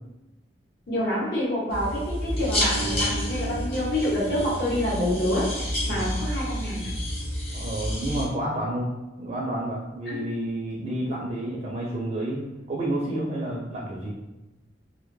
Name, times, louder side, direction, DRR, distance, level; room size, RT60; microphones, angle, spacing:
voice 1, 0.9-5.5 5.9-6.9 10.1-10.2, left 1 dB, 65° left, -7 dB, 0.8 m, -27 dB
sound 1, 1.7-8.2, equal, 35° left, 0.9 m, -29 dB
voice 2, 2.8-3.1 5.9-6.1 7.5-8.9 9.2-14.1, right 1 dB, 40° right, -4 dB, 0.4 m, -30 dB
2.2 x 2.1 x 3.0 m, 1.0 s
head